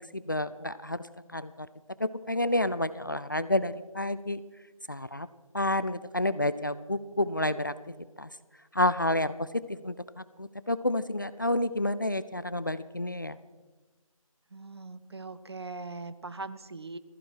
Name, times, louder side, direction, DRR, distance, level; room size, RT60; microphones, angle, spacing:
voice 1, 0.1-1.0 1.3-1.7 2.0-4.4 4.9-5.3 5.5-7.7 8.2-8.3 8.7-9.3 9.8-9.9 10.4-13.4, left 1 dB, 35° left, 15 dB, 0.4 m, -29 dB
voice 2, 14.5-17.0, right 3 dB, 45° right, 14 dB, 0.7 m, -40 dB
16.0 x 14.5 x 4.5 m, 1.2 s
figure-of-eight pair, 160°, 18 cm